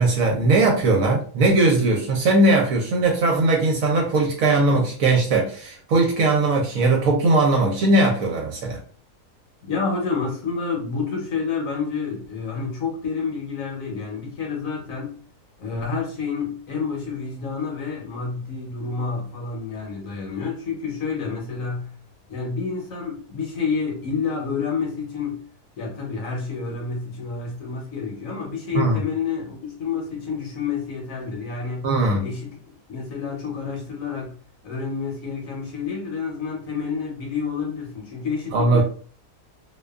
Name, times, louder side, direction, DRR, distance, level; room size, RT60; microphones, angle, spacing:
voice 1, 0.0-8.8 28.7-29.0 31.8-32.2 38.5-38.8, right 2 dB, 65° right, 0.9 m, -19 dB
voice 2, 9.6-15.2 15.6-21.9 22.3-25.4 25.8-31.9 32.2-34.4 34.6-38.8, left 5 dB, 65° left, 1.0 m, -29 dB
2.6 x 2.3 x 2.3 m
omnidirectional pair, 1.7 m